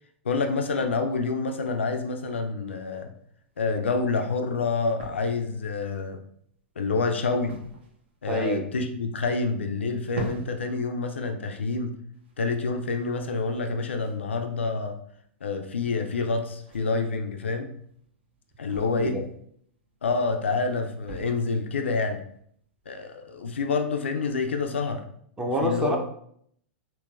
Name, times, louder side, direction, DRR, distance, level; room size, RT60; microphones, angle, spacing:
voice 1, 0.3-3.1 3.6-6.2 6.8-7.6 8.2-11.9 12.4-15.0 15.4-17.7 18.6-19.2 20.0-22.2 22.9-25.0 25.6-26.0, left 4 dB, 85° left, 5 dB, 0.3 m, -27 dB
sound 1, 3.2-22.9, right 2 dB, 70° right, 0.8 m, -46 dB
voice 2, 8.3-8.7 18.9-19.2 25.4-26.0, equal, 15° right, 1 dB, 0.5 m, -27 dB
3.8 x 2.1 x 2.4 m, 0.66 s
hypercardioid pair, 105°, 6 cm